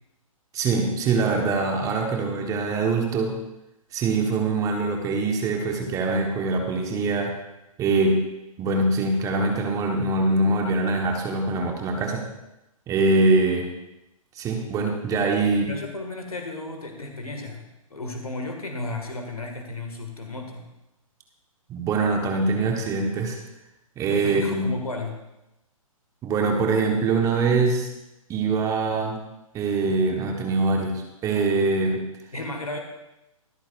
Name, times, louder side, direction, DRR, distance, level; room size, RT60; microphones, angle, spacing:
voice 1, 0.5-3.4 3.9-7.3 7.8-8.2 8.6-12.2 12.9-13.7 14.3-15.7 21.7-23.4 24.0-24.7 26.2-27.9 28.3-29.2 29.5-32.0, right 3 dB, 20° right, 2 dB, 1.4 m, -23 dB
voice 2, 15.6-17.7 17.9-20.7 24.2-25.2 32.3-32.8, left 2 dB, 85° left, 3 dB, 2.0 m, -33 dB
24.0 x 8.9 x 2.6 m, 0.93 s
figure-of-eight pair, 130°, 18 cm